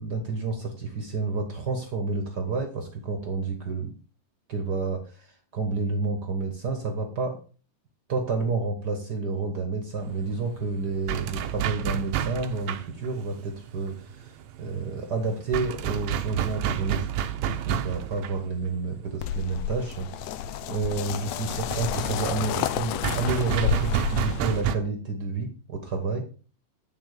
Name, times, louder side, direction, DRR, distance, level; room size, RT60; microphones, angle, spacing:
voice 1, 0.0-3.9 4.5-7.4 8.1-17.1 17.4-26.2, right 4 dB, 55° right, 4 dB, 1.1 m, -30 dB
sound 1, 10.0-24.8, right 10 dB, 85° right, 2.3 m, -31 dB
sound 2, 19.2-24.6, left 9 dB, 80° left, 1.5 m, -30 dB
11.0 x 3.8 x 6.6 m, 0.39 s
omnidirectional pair, 3.7 m